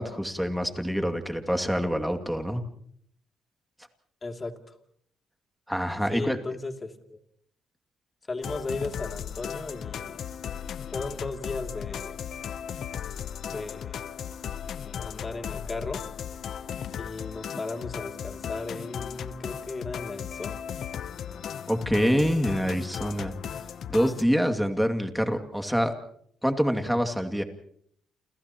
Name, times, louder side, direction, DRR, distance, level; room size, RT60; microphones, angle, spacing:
voice 1, 0.0-2.6 5.7-6.4 21.7-23.3 23.9-25.9 26.4-27.4, equal, ahead, 6 dB, 2.4 m, -26 dB
voice 2, 4.2-4.7 6.1-7.2 8.3-10.2 10.9-12.2 13.4-14.0 14.8-16.0 17.0-20.6, left 3 dB, 30° left, 4 dB, 2.7 m, -36 dB
sound 1, 8.4-24.2, left 8 dB, 65° left, 0.8 m, -36 dB
29.5 x 29.0 x 3.0 m, 0.64 s
cardioid pair, 90°, 0 cm